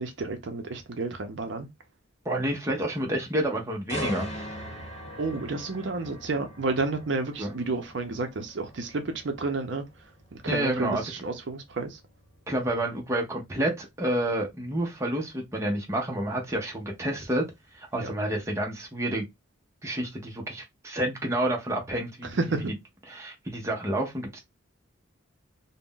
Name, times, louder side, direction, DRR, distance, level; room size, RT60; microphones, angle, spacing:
voice 1, 0.0-1.7 5.2-9.9 10.3-12.0 18.0-18.1 22.2-22.7, right 3 dB, 60° right, 0.5 m, -31 dB
voice 2, 2.2-4.5 7.4-7.5 10.5-11.0 12.5-17.5 17.7-19.3 19.8-22.4 23.1-24.4, right 1 dB, 15° right, 0.6 m, -29 dB
sound 1, 3.9-17.7 18.2-18.4, equal, 35° left, 1.0 m, -43 dB
2.5 x 2.1 x 3.6 m
head